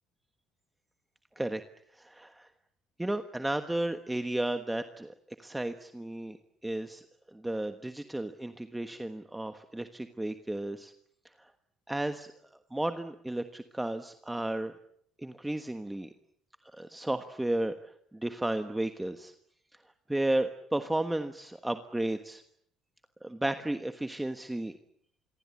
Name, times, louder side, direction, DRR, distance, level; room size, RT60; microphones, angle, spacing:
voice 1, 1.9-2.5 3.0-5.1 5.4-6.4 6.6-7.0 7.3-10.9 11.4-11.5 11.9-12.3 12.7-14.7 15.2-16.1 16.7-19.3 20.1-22.4 23.2-24.7, right 1 dB, 5° right, 8 dB, 1.3 m, -33 dB
27.0 x 23.5 x 8.6 m, 0.68 s
cardioid pair, 140°, 0 cm